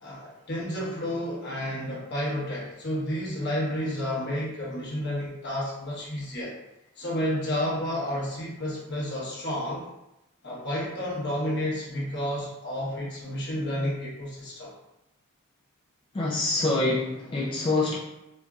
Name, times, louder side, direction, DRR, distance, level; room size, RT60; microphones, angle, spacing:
voice 1, 0.0-6.5 7.0-9.9 10.4-14.7, equal, 55° left, -5 dB, 1.1 m, -31 dB
voice 2, 16.1-18.0, left 2 dB, 25° left, -5 dB, 0.3 m, -25 dB
4.4 x 2.5 x 2.3 m, 0.91 s
head